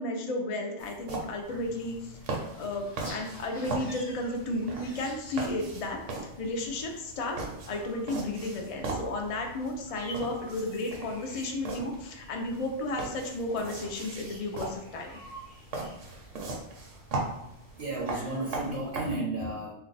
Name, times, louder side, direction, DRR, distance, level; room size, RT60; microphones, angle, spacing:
voice 1, 0.0-2.2 2.5-7.4 7.7-15.1, left 2 dB, 70° left, 2 dB, 0.3 m, -33 dB
sound 1, 0.8-19.0, right 3 dB, 75° right, 1.0 m, -39 dB
sound 2, 1.4-18.7, equal, 45° left, 0.8 m, -50 dB
voice 2, 17.8-19.7, right 2 dB, 55° right, -2 dB, 0.7 m, -33 dB
2.6 x 2.1 x 3.9 m, 0.81 s
omnidirectional pair, 1.3 m